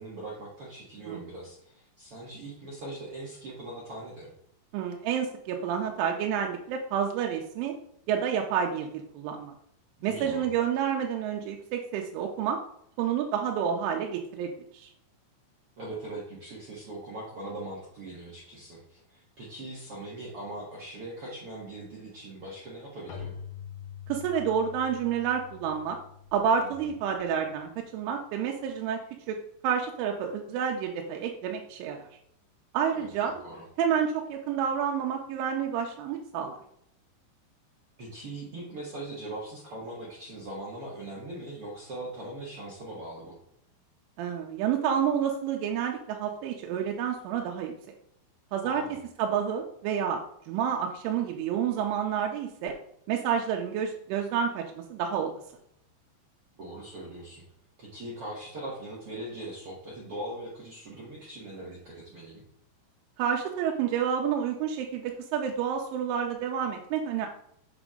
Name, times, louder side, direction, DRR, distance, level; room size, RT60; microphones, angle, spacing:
voice 1, 0.0-4.3 10.0-10.4 15.8-23.3 26.8-26.9 32.9-33.6 38.0-43.3 48.6-49.0 56.6-57.4 57.8-62.4, right 1 dB, 70° right, -6 dB, 1.3 m, -41 dB
voice 2, 4.7-7.8 8.1-9.5 10.0-12.6 13.0-14.9 24.1-26.0 26.3-29.0 29.3-29.4 29.6-32.1 32.7-33.4 33.8-36.6 44.2-47.7 48.5-48.8 49.2-50.2 50.5-52.7 53.1-55.3 63.2-67.3, right 8 dB, 90° right, 2 dB, 3.2 m, -29 dB
Keyboard (musical), 23.1-27.6, left 8 dB, 70° left, 2.0 m, -45 dB
7.4 x 6.1 x 3.7 m, 0.73 s
omnidirectional pair, 5.5 m